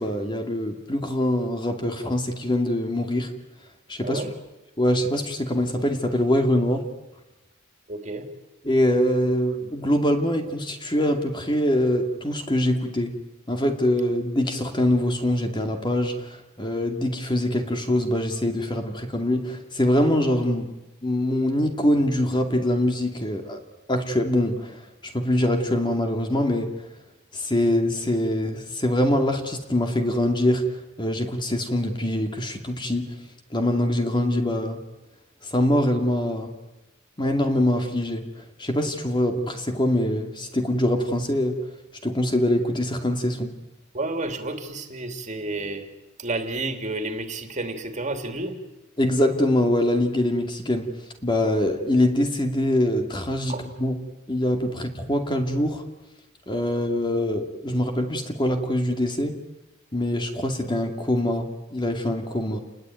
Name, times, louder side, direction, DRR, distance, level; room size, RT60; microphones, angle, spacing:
voice 1, 0.0-3.3 3.9-4.2 4.8-6.8 8.6-13.1 13.5-20.7 21.0-23.6 23.9-26.7 27.3-33.1 33.5-34.8 35.4-36.5 37.2-41.6 42.0-43.5 49.0-50.9 51.2-54.0 54.3-55.8 56.5-59.4 59.9-62.6, left 1 dB, 20° left, 5 dB, 2.4 m, -24 dB
voice 2, 4.0-4.3 7.9-8.3 43.9-45.9 46.2-48.6 53.5-53.7, right 2 dB, 35° right, 7 dB, 2.8 m, -30 dB
29.5 x 20.5 x 9.3 m, 1.0 s
head